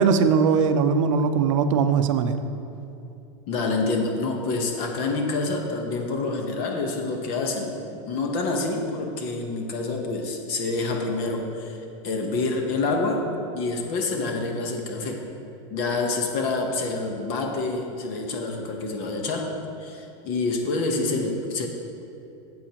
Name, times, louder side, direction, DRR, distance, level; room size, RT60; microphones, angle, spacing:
voice 1, 0.0-2.4, right 6 dB, 80° right, 9 dB, 0.6 m, -20 dB
voice 2, 3.5-13.3 13.5-15.2 15.7-19.5 19.8-21.7, left 3 dB, 35° left, 2 dB, 1.0 m, -27 dB
13.5 x 7.8 x 2.9 m, 2.8 s
supercardioid pair, 175°, 16 cm